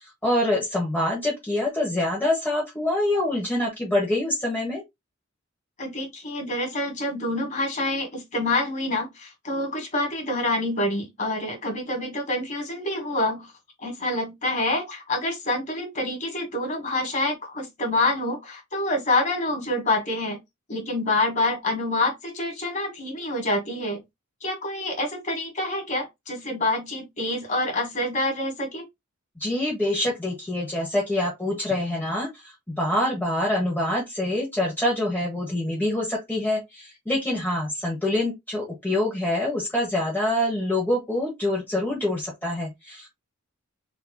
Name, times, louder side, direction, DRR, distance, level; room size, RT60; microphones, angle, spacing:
voice 1, 0.2-4.8 29.4-43.1, left 1 dB, 10° left, 1.2 m, -25 dB
voice 2, 5.8-13.5 13.8-20.4 20.7-24.0 24.4-28.9, left 2 dB, 40° left, 1.5 m, -27 dB
3.7 x 3.2 x 2.3 m
head